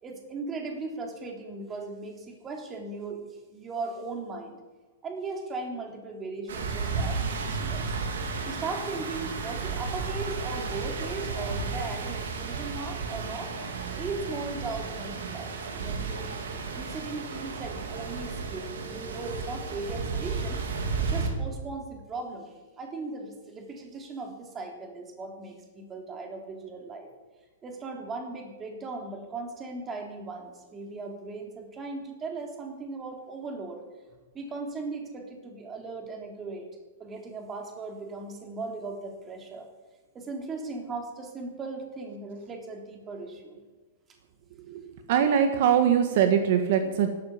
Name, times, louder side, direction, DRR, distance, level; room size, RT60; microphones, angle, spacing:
voice 1, 0.0-3.3 3.5-4.6 5.0-8.0 8.5-13.5 14.0-16.4 16.7-20.6 21.0-27.1 27.6-33.8 34.3-36.7 37.0-39.7 40.1-43.6, right 3 dB, 20° right, 2 dB, 3.4 m, -38 dB
sound 1, 6.5-21.3, right 4 dB, 80° right, 3.9 m, -33 dB
voice 2, 45.1-47.1, right 8 dB, 55° right, 7 dB, 1.7 m, -22 dB
15.5 x 12.5 x 7.3 m, 1.3 s
hypercardioid pair, 145°, 0 cm